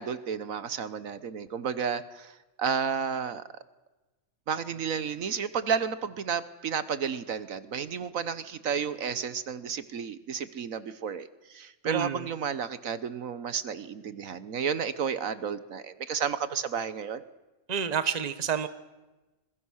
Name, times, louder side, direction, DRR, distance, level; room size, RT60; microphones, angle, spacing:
voice 1, 0.0-3.4 4.5-17.2, right 7 dB, 65° right, 14 dB, 1.4 m, -32 dB
voice 2, 11.8-12.2 17.7-18.7, right 7 dB, 30° right, 12 dB, 1.1 m, -29 dB
26.0 x 22.0 x 6.4 m, 1.1 s
omnidirectional pair, 1.5 m